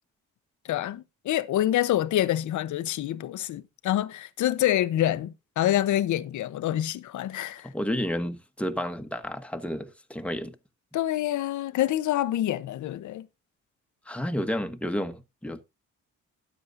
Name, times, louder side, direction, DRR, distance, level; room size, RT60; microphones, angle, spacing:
voice 1, 0.7-7.7 10.9-13.3, left 13 dB, 75° left, 0.8 m, -26 dB
voice 2, 7.6-10.6 14.1-15.6, equal, 5° left, 1.2 m, -31 dB
13.0 x 9.3 x 2.6 m
cardioid pair, 85°, 30 cm